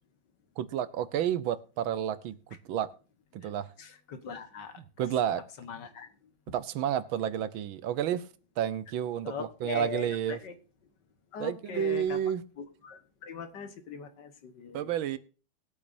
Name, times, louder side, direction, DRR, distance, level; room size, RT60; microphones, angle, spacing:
voice 1, 0.6-2.9 3.3-3.7 4.8-5.4 6.5-8.3 8.6-10.4 11.4-12.4 14.7-15.2, right 10 dB, 90° right, 1.7 m, -31 dB
voice 2, 3.8-4.7 5.6-6.1 9.2-10.5 11.3-12.2 12.6-14.9, left 6 dB, 60° left, 1.8 m, -40 dB
21.0 x 8.5 x 2.6 m
omnidirectional pair, 2.1 m